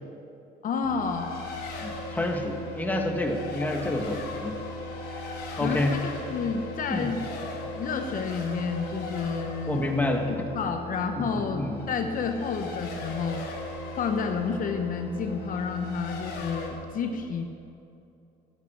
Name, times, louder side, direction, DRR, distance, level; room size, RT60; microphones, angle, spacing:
voice 1, 0.6-1.4 5.6-7.2 7.7-9.9 10.3-13.4 13.9-17.5, left 5 dB, 55° left, 6 dB, 0.9 m, -30 dB
sound 1, 0.8-16.9, right 1 dB, 80° right, 3.6 m, -41 dB
Race car auto racing, 1.0-16.7, left 3 dB, 75° left, 3.5 m, -40 dB
voice 2, 1.8-4.6 5.2-5.9 6.9-7.1 9.7-10.3 11.2-11.7, left 1 dB, 10° left, 2 dB, 1.7 m, -29 dB
15.0 x 8.4 x 7.3 m, 2.7 s
cardioid pair, 110°, 17 cm